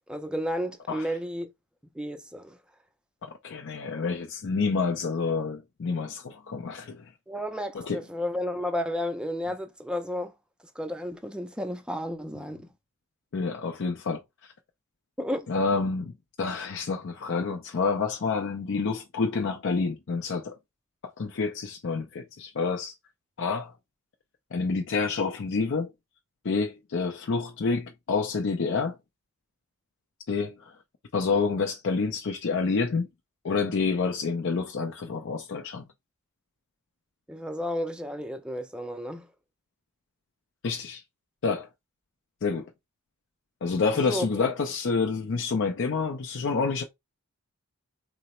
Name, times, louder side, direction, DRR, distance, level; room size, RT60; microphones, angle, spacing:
voice 1, 0.0-1.5 2.0-2.6 7.3-10.3 10.8-12.6 15.2-15.5 37.3-39.3 43.9-44.3, equal, 5° right, 0.4 m, -32 dB
voice 2, 3.2-7.1 7.7-8.0 13.3-14.2 15.5-20.6 21.2-22.9 23.4-23.7 24.5-25.9 26.4-29.0 30.3-30.8 31.1-33.1 33.4-35.8 40.6-41.0 41.4-41.7 42.4-42.7 43.6-46.8, left 4 dB, 55° left, 0.5 m, -28 dB
3.8 x 2.0 x 4.2 m
head